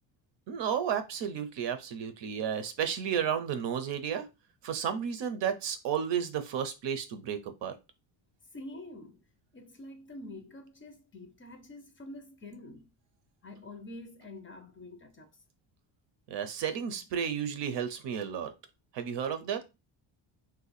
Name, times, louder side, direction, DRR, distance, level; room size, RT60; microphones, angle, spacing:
voice 1, 0.5-4.3 4.6-7.7 16.3-18.5 18.9-19.6, right 8 dB, 65° right, 0.7 m, -32 dB
voice 2, 8.5-9.2 9.5-12.9 13.4-15.3, left 1 dB, 25° left, 0.5 m, -46 dB
2.7 x 2.3 x 4.0 m
cardioid pair, 135°, 46 cm